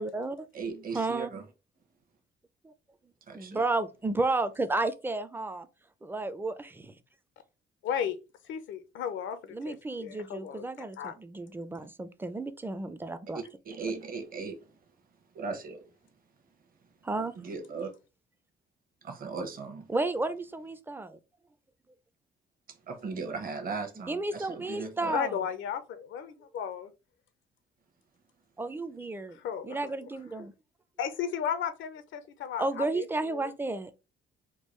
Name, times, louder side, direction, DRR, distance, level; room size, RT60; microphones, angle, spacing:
voice 1, 0.0-0.5 0.9-1.3 2.6-2.7 3.3-5.7 6.0-6.9 9.5-13.4 17.0-17.3 19.9-21.2 24.1-25.4 28.6-30.5 32.6-33.9, right 2 dB, 10° right, 0.4 m, -32 dB
voice 2, 0.5-1.4 3.3-3.6 11.8-11.9 13.3-14.7 15.3-15.8 17.4-17.9 19.0-19.9 22.7-25.1, right 4 dB, 45° right, 0.9 m, -38 dB
voice 3, 7.8-8.2 8.5-10.7 11.0-11.1 25.1-26.9 29.4-29.9 31.0-33.5, left 8 dB, 75° left, 0.6 m, -34 dB
3.7 x 2.3 x 3.1 m
cardioid pair, 90°, 20 cm